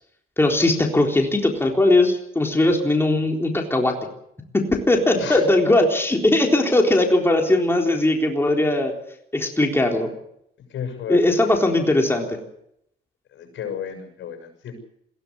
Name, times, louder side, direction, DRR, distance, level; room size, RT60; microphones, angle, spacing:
voice 1, 0.4-4.0 4.5-8.9 9.3-10.1 11.1-12.4, left 2 dB, 10° left, 1 dB, 3.9 m, -19 dB
voice 2, 10.7-11.4 13.3-14.8, left 8 dB, 75° left, 5 dB, 6.6 m, -32 dB
21.5 x 16.5 x 8.1 m, 0.74 s
cardioid pair, 90°, 20 cm